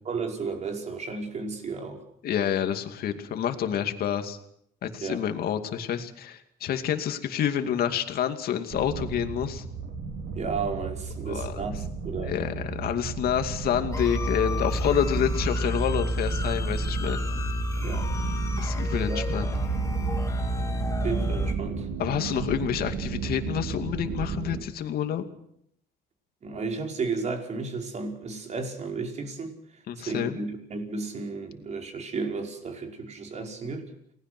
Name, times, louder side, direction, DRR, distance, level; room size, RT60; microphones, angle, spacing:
voice 1, 0.0-2.0 5.0-5.2 10.3-12.4 17.8-18.1 19.1-19.3 21.0-21.9 26.4-29.6 30.0-33.9, right 4 dB, 40° right, 2 dB, 5.4 m, -33 dB
voice 2, 2.2-4.4 4.8-9.6 11.2-11.6 12.2-17.2 18.6-19.5 22.0-25.2 29.9-30.4, left 9 dB, 65° left, 7 dB, 2.6 m, -28 dB
sound 1, 8.7-24.6, right 6 dB, 75° right, 4.3 m, -34 dB
sound 2, 13.9-21.5, equal, 20° left, 2.7 m, -29 dB
29.5 x 19.5 x 6.2 m, 0.74 s
cardioid pair, 110°, 17 cm